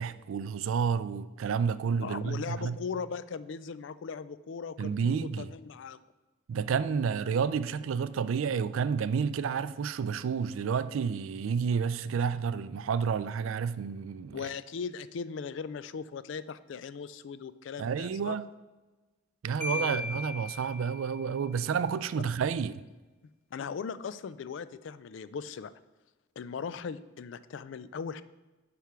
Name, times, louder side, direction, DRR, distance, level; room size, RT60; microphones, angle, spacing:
voice 1, 0.0-2.8 4.8-5.5 6.5-14.5 17.8-18.5 19.4-22.8, right 6 dB, 75° right, 0.4 m, -30 dB
voice 2, 2.0-6.0 14.3-18.4 19.7-20.1 23.5-25.7 26.4-28.2, left 6 dB, 60° left, 0.3 m, -39 dB
Marimba xylophone, 19.6-21.3, left 3 dB, 5° left, 1.0 m, -37 dB
9.2 x 3.5 x 5.8 m
head